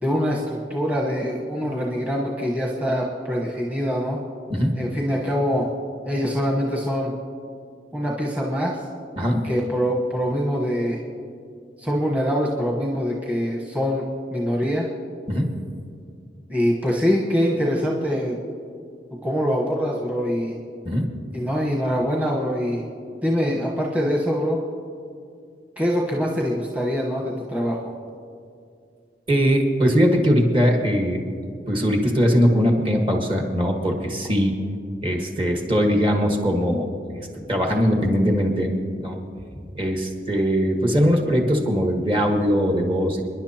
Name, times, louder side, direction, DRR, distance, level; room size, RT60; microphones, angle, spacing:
voice 1, 0.0-4.2 4.8-5.7 6.1-7.1 7.9-8.8 9.4-11.0 11.8-14.0 14.3-14.9 16.5-18.4 19.2-20.5 21.3-22.9 23.2-24.6 25.8-27.9, equal, 10° right, -3 dB, 1.2 m, -24 dB
voice 2, 29.3-31.2 31.7-34.5 35.0-36.9 37.1-39.2 39.7-43.2, equal, 30° right, 1 dB, 1.5 m, -21 dB
29.5 x 10.5 x 3.0 m, 2.3 s
head